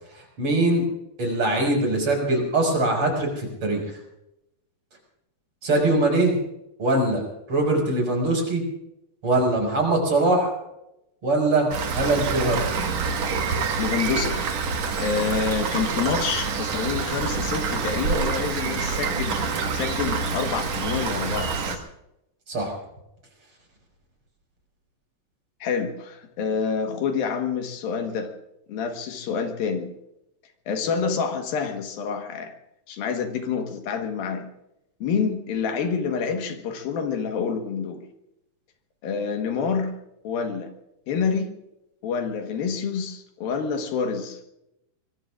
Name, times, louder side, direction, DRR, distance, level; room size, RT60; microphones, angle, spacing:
voice 1, 0.1-0.8 1.2-3.8 5.6-6.4 6.8-8.6 9.2-10.5 11.2-12.6 22.5-22.7, right 2 dB, 35° right, 0 dB, 6.5 m, -22 dB
Rain, 11.7-21.8, right 5 dB, 55° right, 2.5 m, -27 dB
voice 2, 13.8-14.4 15.0-21.8 25.6-28.3 28.7-29.9 30.7-32.5 32.9-34.5 35.0-38.0 39.0-39.9 40.2-40.7 41.1-41.5 42.0-44.4, left 6 dB, 80° left, 5 dB, 3.2 m, -27 dB
25.5 x 22.0 x 2.5 m, 0.86 s
omnidirectional pair, 4.1 m